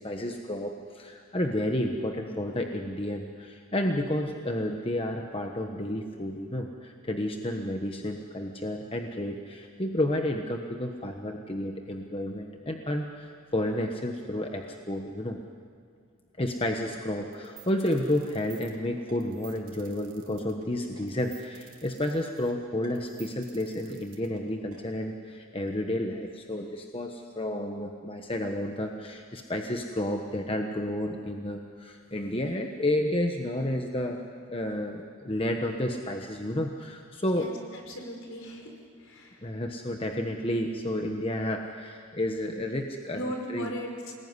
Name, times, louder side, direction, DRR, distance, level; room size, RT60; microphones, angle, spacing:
voice 1, 0.0-15.4 16.4-34.2 34.5-37.5 39.4-43.7, left 1 dB, 25° left, 3 dB, 1.2 m, -31 dB
sound 1, 17.3-24.8, right 9 dB, 90° right, 3.1 m, -52 dB
voice 2, 37.9-38.7 39.0-39.5 43.1-44.2, equal, 65° left, 2 dB, 4.8 m, -37 dB
27.0 x 20.0 x 9.8 m, 2.2 s
head